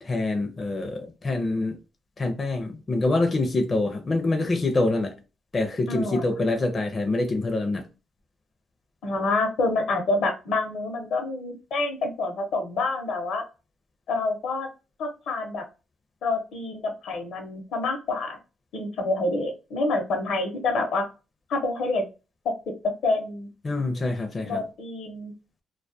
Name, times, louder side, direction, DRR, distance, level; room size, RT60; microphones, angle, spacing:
voice 1, 0.0-1.8 2.2-5.2 5.5-7.9 23.6-24.6, left 2 dB, 30° left, 0.5 m, -25 dB
voice 2, 5.9-6.3 9.0-13.4 14.1-14.7 15.0-15.6 16.2-18.4 18.7-21.1 21.5-22.0 22.4-22.7 23.0-23.5 24.5-25.3, left 2 dB, 75° left, 0.7 m, -27 dB
2.2 x 2.1 x 2.6 m
cardioid pair, 90°, 0 cm